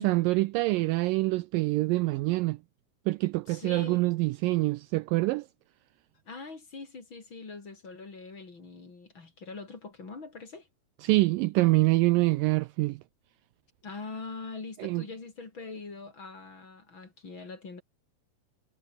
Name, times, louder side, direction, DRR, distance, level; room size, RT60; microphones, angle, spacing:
voice 1, 0.0-2.6 3.1-5.5 11.0-13.0 14.8-15.0, right 21 dB, 85° right, 2.0 m, -25 dB
voice 2, 3.5-4.1 6.3-10.7 13.8-17.8, left 4 dB, 30° left, 3.8 m, -43 dB
omnidirectional pair, 4.5 m